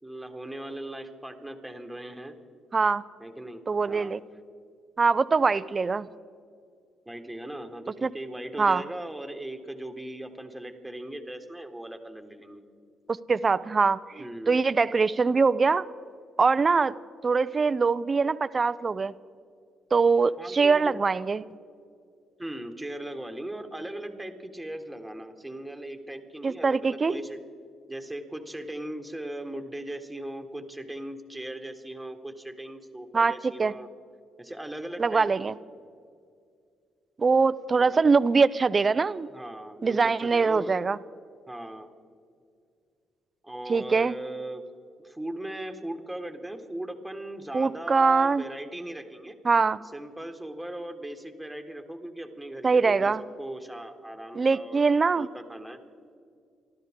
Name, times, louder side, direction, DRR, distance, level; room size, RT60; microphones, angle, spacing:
voice 1, 0.0-2.4 3.2-3.6 3.9-4.2 7.0-12.6 14.2-14.6 20.4-21.0 22.4-27.4 27.9-33.9 34.4-35.5 37.8-38.0 39.3-40.7 41.5-41.9 43.4-44.6 45.0-49.4 49.9-55.8, right 1 dB, 5° right, 4 dB, 1.6 m, -38 dB
voice 2, 2.7-3.0 3.7-4.2 5.0-6.1 8.0-8.1 8.6-8.8 13.3-15.9 16.4-17.0 17.2-19.1 19.9-21.4 26.4-27.2 33.1-33.7 35.0-35.5 37.2-39.3 39.8-41.0 43.7-44.1 47.5-48.4 49.4-49.8 52.6-53.2 54.3-55.3, right 4 dB, 35° right, 17 dB, 0.5 m, -23 dB
28.0 x 12.5 x 3.7 m, 2.3 s
cardioid pair, 90°, 0 cm